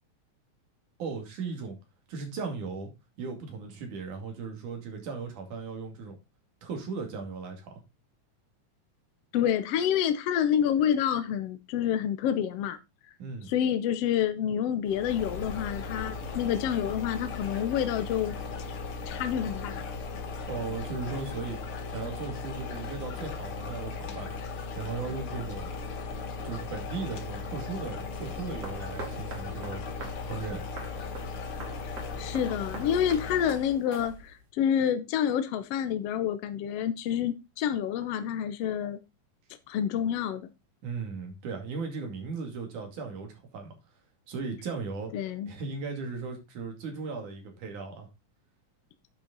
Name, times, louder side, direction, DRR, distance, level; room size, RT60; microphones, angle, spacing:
voice 1, 1.0-1.8 2.1-2.9 3.2-6.2 6.6-7.8 13.2-13.5 20.5-21.6 21.9-25.7 26.4-29.8 30.2-30.6 40.8-43.8 44.3-45.1 45.5-48.1, right 4 dB, 75° right, 3.9 m, -37 dB
voice 2, 9.3-12.8 13.5-18.3 19.1-19.8 32.2-39.0 39.7-40.5 45.1-45.5, left 9 dB, 70° left, 1.6 m, -28 dB
sound 1, 14.9-33.8, left 4 dB, 55° left, 1.8 m, -37 dB
sound 2, 28.2-34.5, right 3 dB, 50° right, 3.7 m, -45 dB
10.5 x 6.2 x 4.0 m
omnidirectional pair, 3.5 m